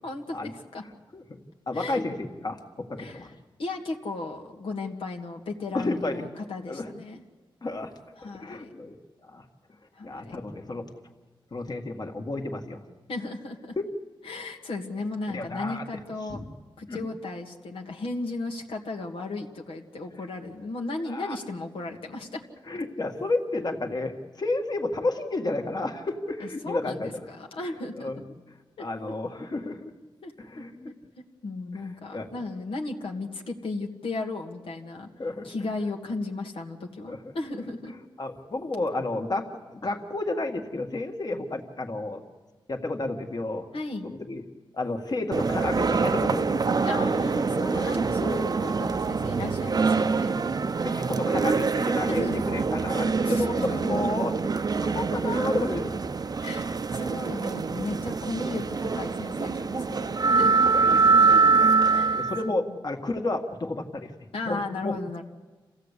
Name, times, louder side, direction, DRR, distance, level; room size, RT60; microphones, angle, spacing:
voice 1, 0.0-0.8 1.7-2.0 3.0-7.2 8.2-8.7 9.9-10.4 13.1-13.8 14.2-16.4 16.8-22.4 26.6-28.2 28.8-28.9 30.2-30.6 31.4-35.1 35.4-37.9 43.7-44.1 46.8-50.4 52.1-52.4 53.2-53.9 56.4-60.8 61.9-62.6 64.3-65.2, left 2 dB, 85° left, 1 dB, 1.9 m, -35 dB
voice 2, 0.8-1.4 1.7-3.3 5.7-6.2 6.7-6.9 7.6-7.9 8.2-9.0 9.3-9.4 10.0-10.9 11.5-12.8 13.8-13.9 15.3-15.8 16.3-16.4 16.9-17.0 21.0-21.4 22.7-27.2 28.0-28.2 28.8-29.9 30.4-30.9 31.7-32.3 35.2-35.5 37.1-37.3 38.2-42.2 42.7-43.7 44.0-44.5 44.7-46.7 47.5-47.6 48.2-48.4 50.4-50.5 50.8-54.4 54.8-55.9 60.7-61.4 62.2-64.1 64.5-65.0, left 2 dB, 50° left, 3 dB, 1.9 m, -31 dB
sound 1, 45.3-62.5, right 4 dB, 45° right, 0.7 m, -24 dB
27.5 x 16.0 x 8.3 m, 1.3 s
cardioid pair, 75°, 9 cm